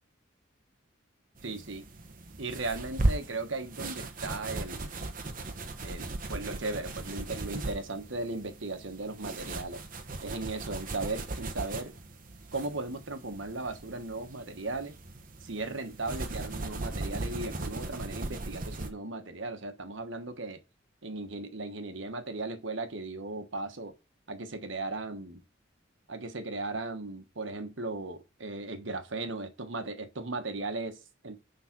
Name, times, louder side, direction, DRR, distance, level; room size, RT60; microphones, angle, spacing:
sound 1, 1.4-18.9, right 2 dB, 40° right, 1.0 m, -37 dB
voice 1, 1.4-1.9 2.4-4.9 5.8-9.8 10.2-11.9 12.5-14.9 15.4-20.6 21.0-23.9 24.3-25.4 26.1-31.4, right 2 dB, 65° right, 1.2 m, -37 dB
9.7 x 3.9 x 6.0 m
head